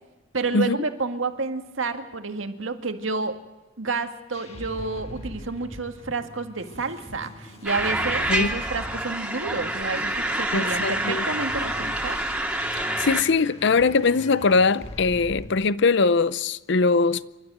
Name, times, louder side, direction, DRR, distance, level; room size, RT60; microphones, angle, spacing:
voice 1, 0.3-3.4 3.8-12.2, right 3 dB, 80° right, 1.9 m, -30 dB
sound 1, 4.3-15.5, left 1 dB, 35° left, 4.0 m, -41 dB
sound 2, 7.6-13.2, right 1 dB, 5° right, 2.2 m, -27 dB
voice 2, 10.5-11.3 13.0-17.2, left 4 dB, 65° left, 0.6 m, -21 dB
27.5 x 13.0 x 9.2 m
head